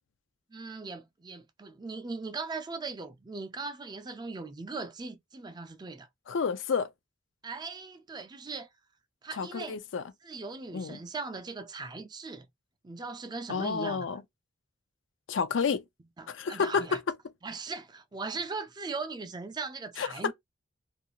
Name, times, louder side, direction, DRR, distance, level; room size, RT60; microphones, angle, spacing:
voice 1, 0.5-6.1 7.4-8.7 9.2-9.8 10.2-12.5 12.8-14.1 15.7-15.8 16.2-17.0 17.4-20.3, right 4 dB, 20° right, 0.4 m, -39 dB
voice 2, 6.3-6.9 9.4-10.0 10.7-11.0 13.5-14.2 15.3-15.8 16.3-17.2 20.0-20.3, left 5 dB, 70° left, 0.4 m, -30 dB
2.4 x 2.3 x 2.8 m
head